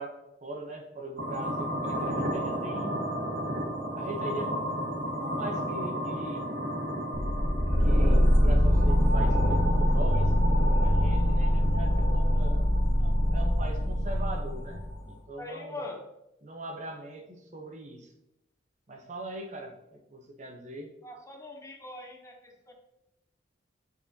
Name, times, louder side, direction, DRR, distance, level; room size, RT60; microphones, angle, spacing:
voice 1, 0.0-3.0 3.9-4.5 5.2-6.5 7.8-10.3 10.8-12.7 13.0-15.8 16.4-18.1 18.9-20.9, right 1 dB, 40° right, 3 dB, 0.8 m, -40 dB
sound 1, 1.2-15.2, equal, 65° right, 1.4 m, -34 dB
sound 2, 7.1-15.0, equal, 50° left, 0.8 m, -24 dB
voice 2, 15.4-16.0 21.0-22.7, left 2 dB, 15° left, 3 dB, 0.6 m, -42 dB
8.7 x 4.1 x 2.7 m, 0.88 s
head